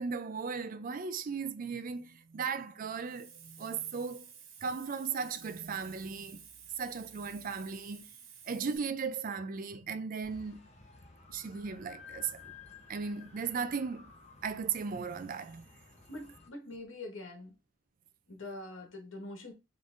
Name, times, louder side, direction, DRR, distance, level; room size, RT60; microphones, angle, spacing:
voice 1, 0.0-4.3 4.6-6.4 6.8-8.1 8.5-10.7 11.3-12.5 12.9-14.1 14.4-15.7, right 5 dB, 45° right, 0.4 m, -37 dB
Hiss, 3.0-8.8, right 8 dB, 85° right, 0.8 m, -53 dB
sound 1, 10.2-16.5, left 5 dB, 35° left, 0.8 m, -54 dB
voice 2, 16.1-17.5 18.3-19.5, left 2 dB, 70° left, 1.3 m, -44 dB
3.9 x 3.2 x 2.5 m
head